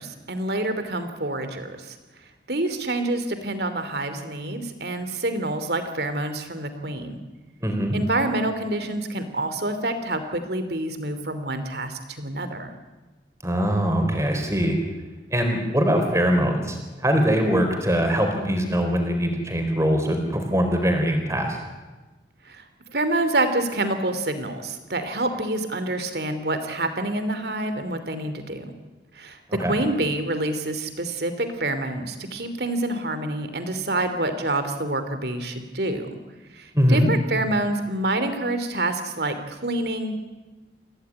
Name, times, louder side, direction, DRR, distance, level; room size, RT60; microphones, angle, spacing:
voice 1, 0.0-2.0 2.5-7.2 7.9-12.7 22.4-22.7 22.9-28.7 29.1-36.1 36.5-40.1, right 2 dB, 60° right, 9 dB, 2.9 m, -27 dB
voice 2, 7.6-7.9 13.4-14.8 15.3-21.6 29.6-29.7 36.7-37.1, equal, 15° right, 4 dB, 4.3 m, -22 dB
27.5 x 16.5 x 9.8 m, 1.2 s
head